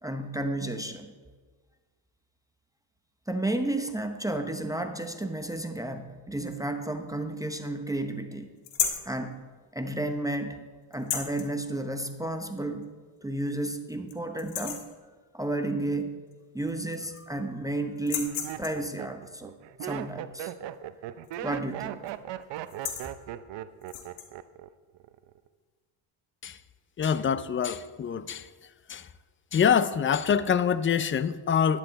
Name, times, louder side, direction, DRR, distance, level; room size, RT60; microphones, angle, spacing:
voice 1, 0.0-1.1 3.3-8.5 9.0-9.4 9.7-10.6 10.9-12.9 13.2-14.8 15.3-16.2 16.5-19.5 19.8-20.5 21.4-22.1, right 1 dB, 5° right, 0.7 m, -32 dB
sound 1, 8.6-9.1 10.9-11.5 12.8-12.9 13.4-13.5 13.9-14.1 14.4-14.9 16.3-16.4 16.7-17.4 18.0-18.9 21.2-21.5 21.8-22.1 22.6-23.1 23.8-24.3, left 9 dB, 85° left, 1.6 m, -33 dB
Laughter, 17.0-17.4 18.1-24.7 24.9-25.5, right 12 dB, 60° right, 0.7 m, -38 dB
voice 2, 27.0-28.5 28.9-29.1 29.5-31.8, left 7 dB, 25° left, 0.4 m, -25 dB
12.0 x 10.0 x 4.0 m
cardioid pair, 105°, 50 cm